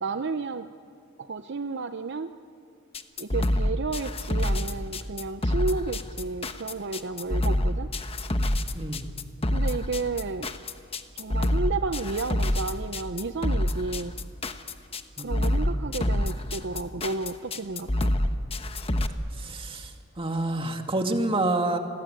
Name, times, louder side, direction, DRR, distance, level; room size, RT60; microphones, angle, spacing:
voice 1, 0.0-0.7 1.2-2.3 3.2-7.9 9.5-10.6 11.2-14.1 15.2-18.1, right 4 dB, 55° right, 9 dB, 0.7 m, -32 dB
sound 1, 2.9-19.1, left 1 dB, 30° left, 1.1 m, -26 dB
voice 2, 8.7-9.1 15.2-15.9 19.4-19.9 20.2-21.8, right 2 dB, 25° right, 4 dB, 2.2 m, -28 dB
29.5 x 22.0 x 9.0 m, 2.4 s
head